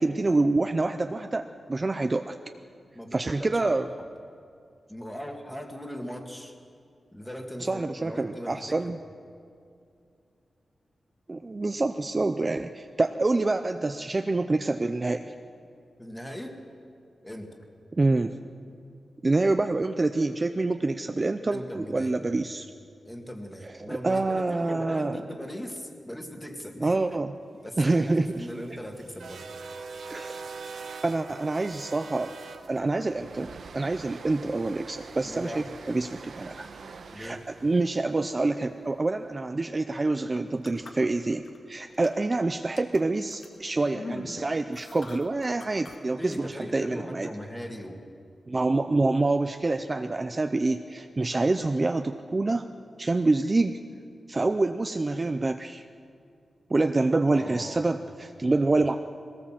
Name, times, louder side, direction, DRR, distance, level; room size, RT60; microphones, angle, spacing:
voice 1, 0.0-2.4 3.1-3.9 7.6-9.0 11.3-15.3 17.9-18.4 19.2-22.7 23.6-25.2 26.8-27.4 27.8-28.5 30.1-30.4 31.0-32.3 32.7-36.7 37.1-47.3 48.5-52.7 53.0-53.8 54.3-55.8 56.7-59.0, right 2 dB, 25° right, 7 dB, 0.5 m, -26 dB
voice 2, 3.0-3.9 4.9-6.5 7.1-8.9 16.0-16.6 17.2-17.6 21.5-22.4 23.1-27.2 27.6-29.5 35.2-35.7 37.1-37.4 46.1-48.0 57.3-57.8, equal, 10° left, 4 dB, 1.8 m, -39 dB
sound 1, 27.9-40.1, right 4 dB, 75° right, 1.1 m, -44 dB
sound 2, 40.3-41.6 41.9-42.3 42.8-46.0 46.3-46.4, left 3 dB, 55° left, 1.9 m, -43 dB
21.5 x 18.0 x 7.4 m, 2.4 s
wide cardioid pair, 180°, 0 cm